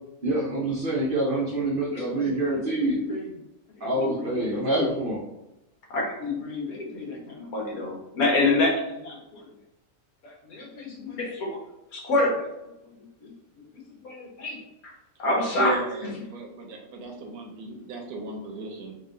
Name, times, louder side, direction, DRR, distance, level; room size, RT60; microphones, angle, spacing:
voice 1, 0.2-3.0 3.8-5.2, right 2 dB, 55° right, -3 dB, 0.6 m, -26 dB
voice 2, 1.9-2.4 2.7-3.3 3.8-4.9 5.9-9.4 10.2-11.6 11.9-12.5 13.2-13.3 13.7-14.9 15.2-15.8, left 2 dB, 80° left, -2 dB, 1.6 m, -28 dB
voice 3, 15.5-18.9, right 3 dB, 80° right, 2 dB, 1.3 m, -34 dB
3.9 x 2.5 x 3.7 m, 0.92 s
omnidirectional pair, 1.6 m